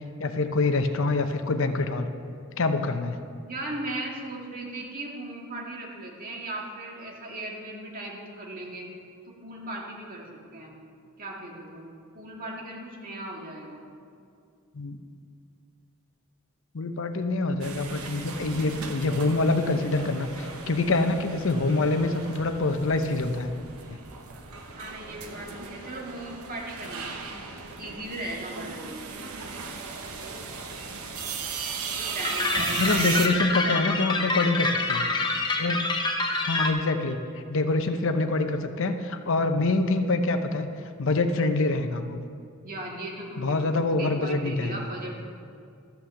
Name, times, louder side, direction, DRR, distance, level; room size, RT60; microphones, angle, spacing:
voice 1, 0.2-2.1 2.6-3.2 14.7-15.0 16.7-23.5 32.8-35.1 35.6-35.8 36.4-37.2 37.5-40.7 41.0-42.2 43.4-44.8, left 2 dB, 60° left, 8 dB, 0.7 m, -25 dB
voice 2, 3.4-8.9 9.3-10.7 11.2-13.8 24.8-27.3 27.8-29.1 32.1-33.3 33.6-34.0 42.6-45.2, right 1 dB, 40° right, -2 dB, 2.0 m, -37 dB
sound 1, 17.6-33.3, right 5 dB, 80° right, 1.1 m, -37 dB
sound 2, 32.2-36.7, left 3 dB, 20° left, 0.8 m, -27 dB
13.0 x 6.0 x 7.2 m, 2.4 s
head